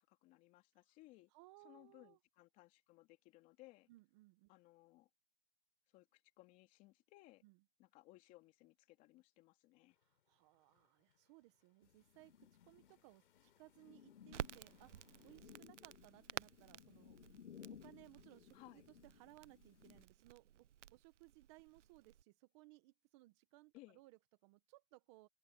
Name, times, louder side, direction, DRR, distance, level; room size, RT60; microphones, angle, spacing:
voice 1, 0.0-1.3 1.6-3.9 4.5-5.1 5.9-7.4 7.8-10.0 18.5-18.8 23.7-24.0, left 19 dB, 20° left, 2.8 m, -63 dB
voice 2, 1.3-2.2 3.9-4.5 7.4-7.6 10.0-17.2 17.7-25.3, right 21 dB, 25° right, 1.3 m, -64 dB
sound 1, 9.9-15.4, left 12 dB, 45° left, 6.9 m, -80 dB
sound 2, 11.8-20.0, left 8 dB, 75° left, 2.3 m, -61 dB
Crackle, 14.3-22.2, right 10 dB, 80° right, 0.8 m, -52 dB
open air
hypercardioid pair, 160°, 35 cm